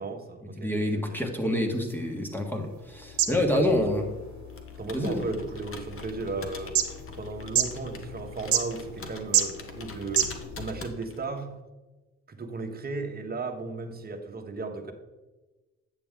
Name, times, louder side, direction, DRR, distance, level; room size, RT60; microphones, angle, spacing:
voice 1, 0.0-1.2 3.3-4.0 4.8-6.8 7.1-11.6 12.3-14.9, right 3 dB, 30° right, 4 dB, 1.2 m, -35 dB
voice 2, 0.6-4.0 4.9-5.2, left 1 dB, 5° left, 3 dB, 1.5 m, -27 dB
sound 1, 1.5-10.7, right 10 dB, 70° right, 1.0 m, -32 dB
sound 2, 2.6-10.7, left 6 dB, 65° left, 0.7 m, -45 dB
Computer keyboard, 4.5-11.4, left 3 dB, 45° left, 1.3 m, -46 dB
9.0 x 6.7 x 3.7 m, 1.1 s
cardioid pair, 90°, 30 cm